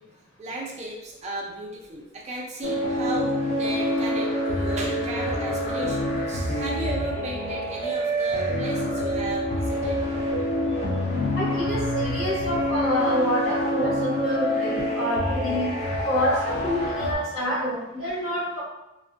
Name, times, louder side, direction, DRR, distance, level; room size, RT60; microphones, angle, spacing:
voice 1, 0.4-10.0, right 1 dB, 35° right, -2 dB, 0.4 m, -35 dB
sound 1, 2.6-17.1, equal, 35° left, 0.4 m, -26 dB
voice 2, 11.3-15.7 16.0-18.6, equal, 85° left, -8 dB, 1.4 m, -27 dB
2.5 x 2.3 x 2.4 m, 0.95 s
head